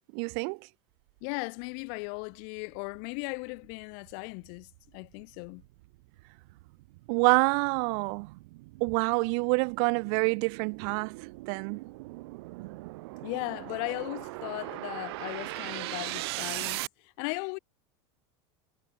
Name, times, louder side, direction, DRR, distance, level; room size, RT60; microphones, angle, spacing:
voice 1, 0.1-0.6 7.1-8.3 8.8-11.8, right 40 dB or more, 60° right, 0.4 m, -27 dB
voice 2, 1.2-5.6 13.2-17.6, left 40 dB or more, 60° left, 1.5 m, -37 dB
sound 1, 2.2-2.3 2.8-16.9, right 22 dB, 75° right, 1.6 m, -40 dB
supercardioid pair, 145°, 13 cm